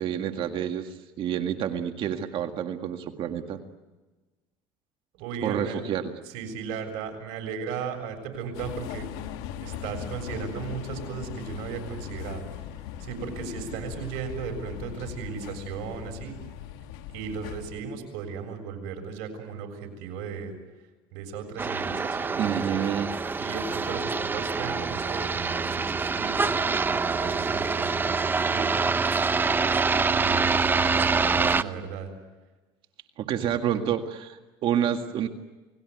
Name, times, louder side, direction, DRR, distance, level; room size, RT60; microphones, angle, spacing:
voice 1, 0.0-3.6 5.4-6.1 13.7-13.8 22.4-23.1 33.2-35.3, right 9 dB, 55° right, 6 dB, 2.0 m, -28 dB
voice 2, 5.1-5.8 6.3-12.5 13.0-16.3 17.1-20.5 21.1-22.6 23.4-29.2 30.1-32.1 33.7-33.8, right 6 dB, 75° right, 4 dB, 7.1 m, -36 dB
sound 1, 8.5-17.8, left 10 dB, 85° left, 1.8 m, -39 dB
sound 2, 21.6-31.6, right 4 dB, 20° right, 0.8 m, -25 dB
29.0 x 19.5 x 9.4 m, 1.2 s
cardioid pair, 115°, 11 cm